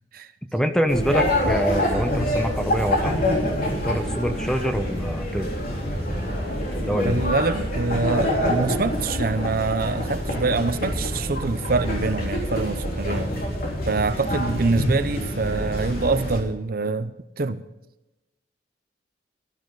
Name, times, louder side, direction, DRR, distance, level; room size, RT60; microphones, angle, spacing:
voice 1, 0.5-3.2 3.8-5.6 6.8-7.2, equal, 5° left, 8 dB, 0.9 m, -25 dB
sound 1, 0.9-16.4, left 1 dB, 55° left, 3.9 m, -26 dB
voice 2, 7.0-13.3 13.9-17.6, right 3 dB, 55° right, 12 dB, 0.7 m, -25 dB
17.0 x 12.5 x 4.0 m, 0.97 s
head